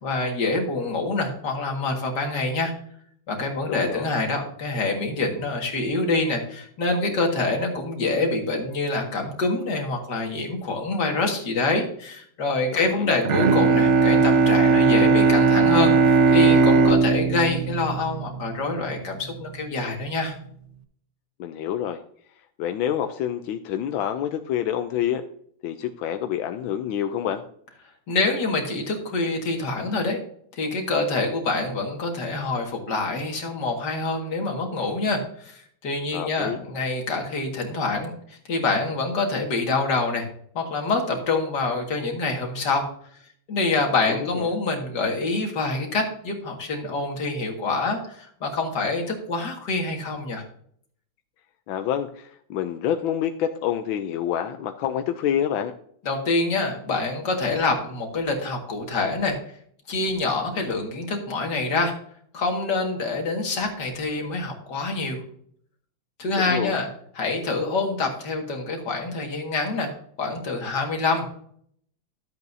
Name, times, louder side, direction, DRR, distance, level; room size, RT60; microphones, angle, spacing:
voice 1, 0.0-2.7 3.3-20.3 28.1-30.2 30.5-40.3 40.5-42.8 43.5-50.4 56.0-59.4 59.9-61.9 62.3-65.2 66.2-66.9 67.2-69.9 70.2-71.3, left 3 dB, 60° left, 2 dB, 2.4 m, -26 dB
voice 2, 3.7-4.1 12.7-13.2 21.4-22.0 22.6-25.2 25.6-27.4 36.1-36.6 44.1-44.5 51.7-55.7 66.4-66.8, left 10 dB, 85° left, 7 dB, 1.4 m, -27 dB
Bowed string instrument, 13.2-18.9, right 4 dB, 65° right, 0.7 m, -18 dB
12.5 x 8.1 x 2.7 m, 0.62 s
omnidirectional pair, 2.1 m